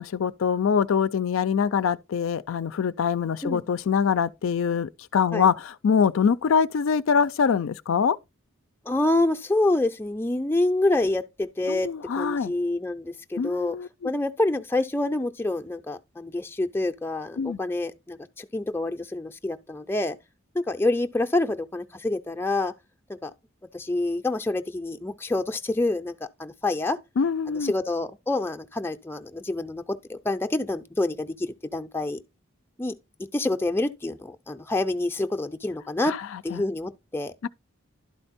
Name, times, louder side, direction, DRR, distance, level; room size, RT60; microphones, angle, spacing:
voice 1, 0.0-8.2 11.7-12.5 13.4-14.1 17.4-17.6 27.2-27.7 36.0-36.2 36.5-36.7 37.4-37.5, left 6 dB, 75° left, 0.4 m, -24 dB
voice 2, 8.9-11.9 12.2-13.8 14.0-20.2 20.5-22.7 23.2-23.3 23.7-26.1 26.4-27.0 27.5-32.2 32.8-32.9 33.3-36.1 36.4-37.3, left 2 dB, 10° left, 0.4 m, -27 dB
11.5 x 4.3 x 4.1 m
head